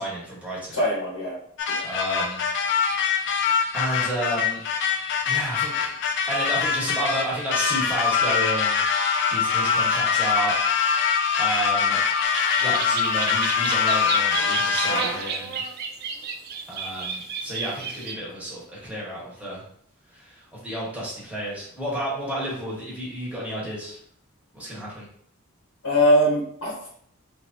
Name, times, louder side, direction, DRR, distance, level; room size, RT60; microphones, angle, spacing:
voice 1, 0.0-0.8 1.8-3.1 3.7-4.6 5.2-5.9 6.3-8.8 9.3-10.8 11.4-12.0 12.5-15.6 16.7-19.6 20.1-24.0 24.5-25.1, right 1 dB, 5° right, -7 dB, 1.2 m, -31 dB
voice 2, 0.7-1.4 1.7-1.9 25.8-26.9, equal, 75° left, -5 dB, 1.0 m, -22 dB
sound 1, 1.6-15.3, left 6 dB, 55° left, 0.4 m, -24 dB
sound 2, 12.3-18.1, right 5 dB, 50° right, 0.4 m, -31 dB
3.0 x 2.6 x 2.6 m, 0.64 s
head